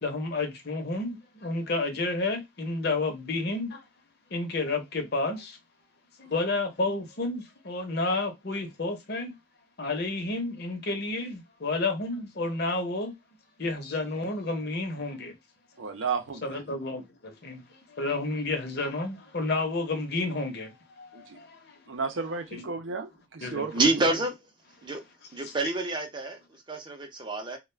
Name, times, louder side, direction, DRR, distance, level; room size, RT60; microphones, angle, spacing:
voice 1, 0.0-3.8 4.3-5.6 6.2-9.4 9.8-13.2 13.6-15.4 16.4-21.7 22.6-22.7 23.4-23.7 25.4-25.5, left 2 dB, 55° left, 0.7 m, -31 dB
voice 2, 15.8-16.6 21.1-21.4 21.9-23.8, right 5 dB, 80° right, 0.6 m, -33 dB
voice 3, 23.7-24.4 24.8-25.0 25.3-26.4 26.7-27.6, right 2 dB, 25° right, 0.5 m, -27 dB
2.3 x 2.2 x 3.2 m
head